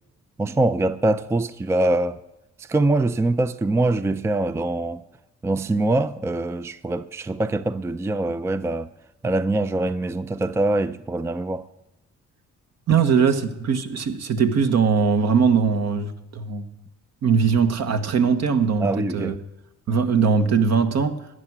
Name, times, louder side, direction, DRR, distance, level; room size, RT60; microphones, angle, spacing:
voice 1, 0.4-2.2 2.6-5.0 5.4-8.9 9.2-11.6 12.9-13.0 18.8-19.4, right 2 dB, 10° right, 0.4 m, -23 dB
voice 2, 12.9-16.7 17.2-19.4 19.9-21.2, right 6 dB, 60° right, 1.3 m, -20 dB
14.5 x 9.8 x 6.0 m
cardioid pair, 90°, 30 cm